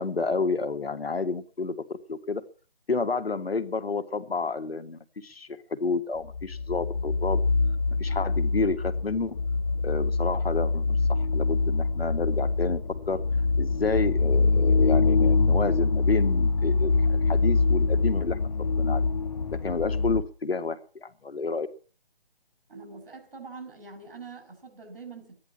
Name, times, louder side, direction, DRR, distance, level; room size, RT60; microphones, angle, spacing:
voice 1, 0.0-2.4 2.9-7.4 8.0-9.4 9.8-13.2 13.6-18.4 18.8-19.0 19.6-21.7, left 4 dB, 80° left, 9 dB, 1.9 m, -30 dB
sound 1, 6.3-20.2, left 3 dB, 45° left, 0.8 m, -24 dB
voice 2, 22.7-25.4, right 4 dB, 70° right, 4 dB, 6.2 m, -44 dB
13.5 x 10.5 x 7.2 m, 0.40 s
figure-of-eight pair, 160°, 30 cm